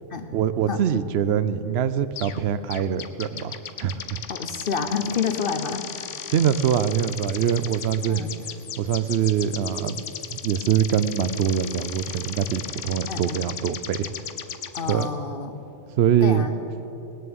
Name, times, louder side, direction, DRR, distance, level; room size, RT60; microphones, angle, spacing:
voice 1, 0.3-4.2 6.3-8.2 8.8-14.1 14.9-15.1 16.0-16.4, right 9 dB, 65° right, 14 dB, 0.8 m, -24 dB
sound 1, 2.2-2.4 2.7-15.1, left 9 dB, 75° left, 1.0 m, -36 dB
voice 2, 4.3-6.1 8.1-8.4 13.1-13.5 14.7-15.6 16.2-16.6, left 5 dB, 50° left, 8 dB, 0.9 m, -29 dB
19.0 x 7.1 x 8.7 m, 3.0 s
omnidirectional pair, 1.3 m